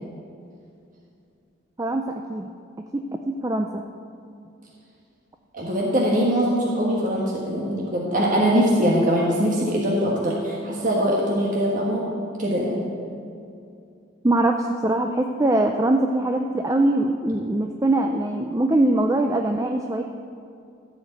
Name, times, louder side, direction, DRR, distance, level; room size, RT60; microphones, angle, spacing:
voice 1, 1.8-2.5 2.9-3.8 14.2-20.0, right 1 dB, 15° right, 4 dB, 0.4 m, -22 dB
voice 2, 5.5-12.1 12.4-12.8, equal, 40° right, -3 dB, 1.4 m, -22 dB
14.5 x 5.1 x 8.2 m, 2.5 s
head